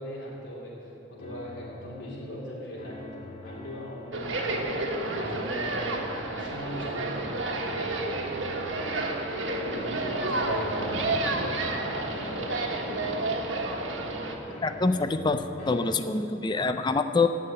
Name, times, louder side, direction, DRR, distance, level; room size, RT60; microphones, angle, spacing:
voice 1, 0.0-4.6 5.0-7.8 9.6-12.5 12.8-13.1, left 1 dB, 80° left, -6 dB, 3.2 m, -39 dB
sound 1, 1.2-15.9, left 1 dB, 40° left, 2.1 m, -44 dB
sound 2, 4.1-14.3, right 2 dB, 85° right, 1.4 m, -30 dB
voice 2, 14.6-17.3, left 3 dB, 25° left, 9 dB, 0.4 m, -25 dB
14.5 x 5.7 x 8.7 m, 3.0 s
head